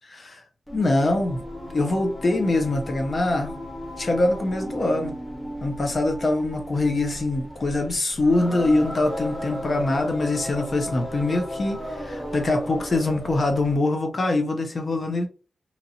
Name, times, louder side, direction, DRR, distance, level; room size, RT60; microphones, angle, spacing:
voice 1, 0.1-0.4 0.7-1.4 1.7-3.6 4.0-5.2 5.6-15.3, left 2 dB, 45° left, 0.5 m, -24 dB
Singing, 0.7-13.9, equal, 15° left, 1.0 m, -35 dB
2.8 x 2.7 x 2.5 m
wide cardioid pair, 110°, 0 cm